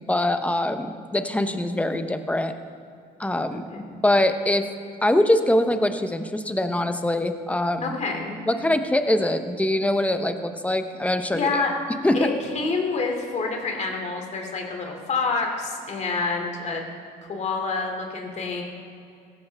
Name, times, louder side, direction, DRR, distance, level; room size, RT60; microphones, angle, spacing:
voice 1, 0.0-2.5 3.2-3.6 4.0-4.7 5.0-8.0 8.5-11.6 12.0-12.3, left 1 dB, 10° left, 8 dB, 0.9 m, -23 dB
voice 2, 3.5-4.0 7.8-8.3 11.3-11.7 12.1-16.8 17.2-18.6, left 4 dB, 45° left, 2 dB, 2.6 m, -28 dB
16.0 x 14.0 x 3.5 m, 2.4 s
cardioid pair, 110°, 17 cm